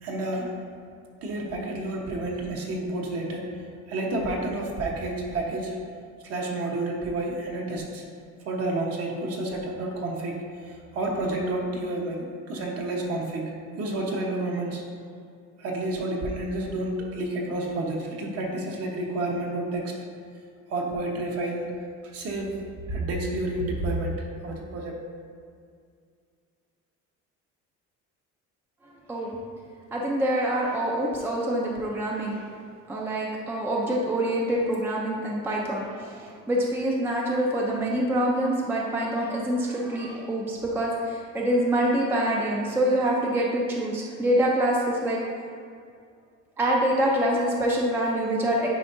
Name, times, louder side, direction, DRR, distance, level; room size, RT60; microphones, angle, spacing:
voice 1, 0.0-0.5 1.2-3.5 3.9-5.7 6.2-8.0 8.4-10.4 10.9-13.5 13.8-14.8 15.6-19.9 20.7-21.7 22.1-22.6 22.9-24.1 24.4-25.0, right 2 dB, 50° right, -1 dB, 1.1 m, -30 dB
voice 2, 29.9-32.4 32.9-45.2 46.6-48.7, right 1 dB, 5° right, -2 dB, 0.4 m, -25 dB
9.3 x 4.5 x 2.6 m, 2.2 s
cardioid pair, 165°, 31 cm